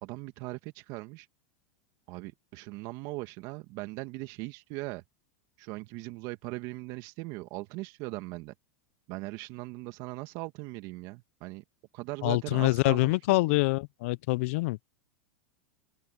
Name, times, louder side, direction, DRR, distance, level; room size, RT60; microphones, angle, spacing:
voice 1, 0.0-1.3 2.1-5.0 5.6-8.5 9.1-11.6 11.9-13.4, right 22 dB, 55° right, 1.9 m, -39 dB
voice 2, 12.2-14.9, left 23 dB, 65° left, 0.6 m, -26 dB
open air
hypercardioid pair, 105°, 8 cm